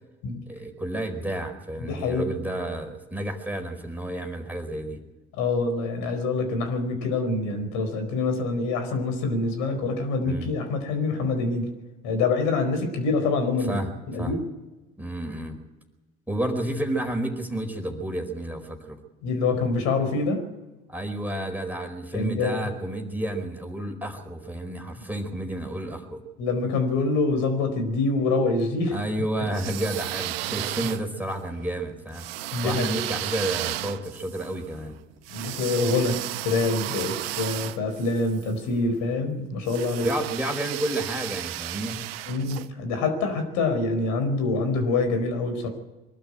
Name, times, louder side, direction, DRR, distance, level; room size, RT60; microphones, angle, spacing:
voice 1, 0.5-5.0 10.2-10.5 13.7-13.9 14.2-14.3 15.0-15.6 16.3-19.0 20.9-26.2 28.9-32.3 32.6-35.0 40.0-42.0, right 1 dB, 5° right, 3 dB, 4.6 m, -31 dB
voice 2, 1.8-2.4 5.4-11.7 12.0-14.4 19.2-20.4 22.1-22.7 26.4-29.0 32.5-33.0 35.3-40.1 42.3-45.7, left 3 dB, 65° left, 7 dB, 4.8 m, -26 dB
sound 1, 29.5-31.4 32.1-38.5 39.6-42.7, right 15 dB, 75° right, 0.9 m, -34 dB
24.0 x 12.5 x 9.0 m, 1.1 s
hypercardioid pair, 65°, 30 cm